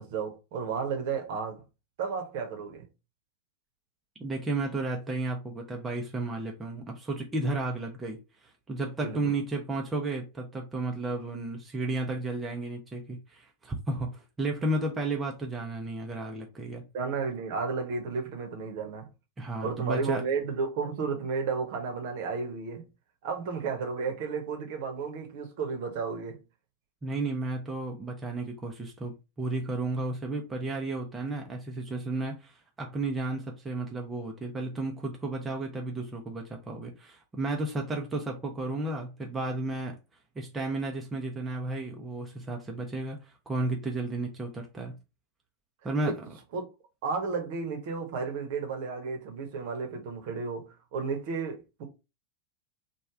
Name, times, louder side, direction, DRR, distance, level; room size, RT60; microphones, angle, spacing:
voice 1, 0.0-1.6 2.0-2.9 9.0-9.3 16.9-19.1 19.6-22.9 23.2-26.4 46.0-46.1 46.5-46.6 47.0-51.8, right 5 dB, 50° right, 1.0 m, -33 dB
voice 2, 4.2-16.8 19.4-20.2 27.0-40.0 40.4-44.9 45.8-46.2, right 2 dB, 15° right, 0.6 m, -33 dB
3.2 x 2.3 x 3.6 m
figure-of-eight pair, 90°, 0 cm